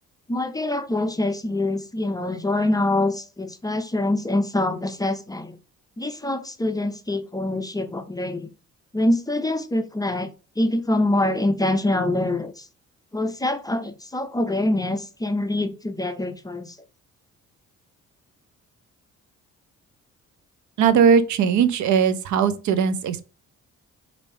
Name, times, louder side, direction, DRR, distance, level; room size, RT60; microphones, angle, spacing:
voice 1, 0.3-5.6 6.0-8.5 8.9-10.3 10.6-12.7 13.1-16.8, left 1 dB, 15° left, 0.4 m, -25 dB
voice 2, 20.8-23.3, right 7 dB, 70° right, 0.6 m, -19 dB
4.3 x 2.6 x 3.3 m
cardioid pair, 90°, 30 cm